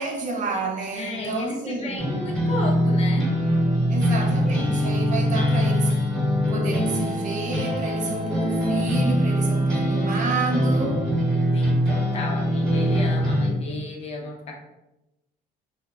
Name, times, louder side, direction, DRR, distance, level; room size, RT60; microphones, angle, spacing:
voice 1, 0.0-2.0 3.9-6.0 6.5-11.0, right 3 dB, 50° right, 0.5 m, -30 dB
voice 2, 0.9-3.3 11.5-14.5, left 2 dB, 40° left, 0.6 m, -33 dB
sound 1, 2.0-13.5, equal, 5° left, 1.0 m, -23 dB
2.1 x 2.0 x 3.4 m
cardioid pair, 110°, 17 cm